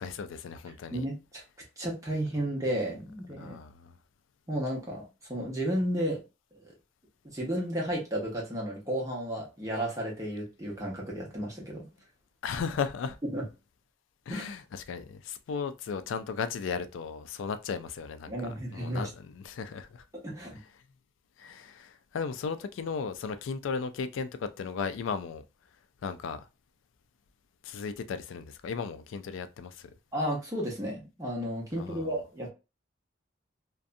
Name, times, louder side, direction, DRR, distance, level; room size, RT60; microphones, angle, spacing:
voice 1, 0.0-1.1 3.4-3.9 12.4-13.2 14.3-18.3 18.7-20.1 21.4-25.4 26.0-26.5 27.6-29.9 31.8-32.2, left 5 dB, 90° left, 0.3 m, -36 dB
voice 2, 0.9-1.4 1.8-3.6 4.5-6.2 7.3-11.9 13.3-13.5 14.3-14.5 18.3-19.1 20.1-20.6 30.1-32.5, right 1 dB, 15° right, 0.9 m, -33 dB
2.6 x 2.2 x 2.4 m
head